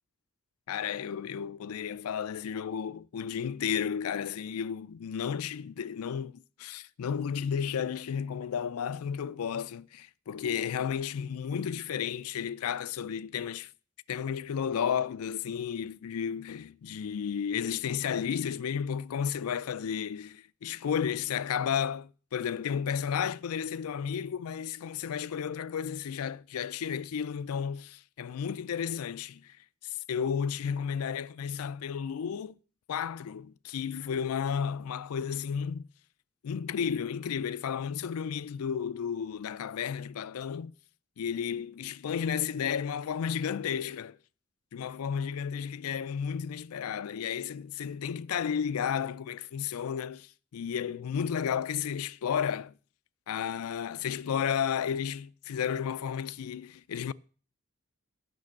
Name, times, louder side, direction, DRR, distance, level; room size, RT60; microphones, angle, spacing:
voice 1, 0.7-13.7 14.1-29.6 29.8-32.6 32.9-35.9 36.4-40.7 41.2-44.2 44.7-52.7 53.3-57.1, left 7 dB, 75° left, 0.4 m, -33 dB
9.1 x 6.0 x 7.2 m
head